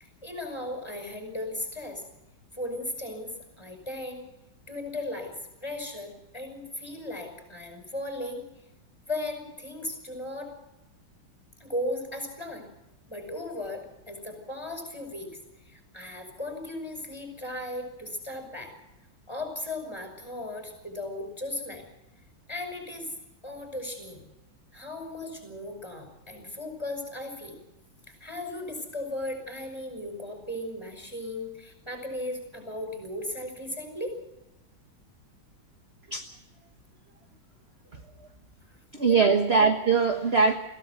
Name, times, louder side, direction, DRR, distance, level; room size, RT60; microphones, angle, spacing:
voice 1, 0.2-2.0 2.6-4.3 4.7-5.3 5.6-8.4 9.1-10.5 11.6-12.7 13.1-15.4 15.6-18.7 19.3-21.9 22.5-23.1 23.4-24.3 24.7-27.6 28.2-34.1 39.1-39.3, left 1 dB, 10° left, 4 dB, 5.6 m, -36 dB
voice 2, 38.9-40.5, right 5 dB, 35° right, 5 dB, 1.4 m, -22 dB
22.0 x 16.5 x 8.2 m, 0.92 s
omnidirectional pair, 2.3 m